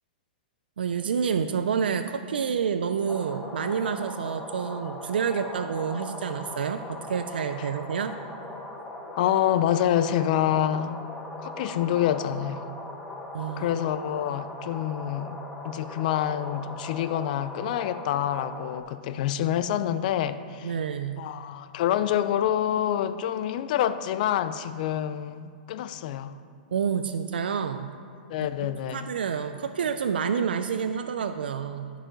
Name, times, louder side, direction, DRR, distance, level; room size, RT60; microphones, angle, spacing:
voice 1, 0.8-8.1 13.3-13.7 20.6-21.2 26.7-27.9 28.6-31.9, right 7 dB, 85° right, 0.4 m, -28 dB
sound 1, 3.1-18.8, left 2 dB, 5° left, 0.7 m, -39 dB
voice 2, 9.2-11.0 11.4-12.7 13.6-15.4 15.6-20.8 21.2-26.4 28.3-29.1, left 11 dB, 55° left, 0.4 m, -27 dB
11.0 x 4.8 x 3.8 m
hypercardioid pair, 125°, 5 cm